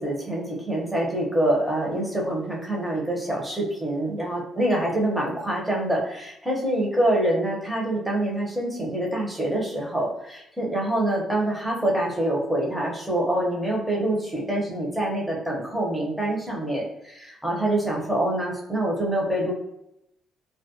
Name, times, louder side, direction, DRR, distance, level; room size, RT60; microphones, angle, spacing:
voice 1, 0.0-19.5, right 1 dB, 5° right, -3 dB, 0.8 m, -26 dB
2.2 x 2.1 x 2.8 m, 0.81 s
cardioid pair, 100°, 0 cm